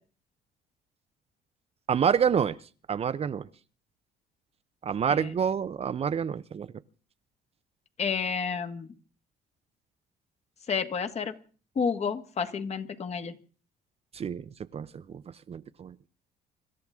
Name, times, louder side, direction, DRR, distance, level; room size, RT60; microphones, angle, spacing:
voice 1, 1.9-2.6 2.9-3.5 4.8-6.7 14.1-15.2 15.5-15.9, right 7 dB, 35° right, 0.7 m, -28 dB
voice 2, 8.0-8.9 10.7-11.3 11.7-13.4, left 6 dB, 40° left, 1.7 m, -30 dB
25.5 x 13.0 x 3.6 m
cardioid pair, 110°, 17 cm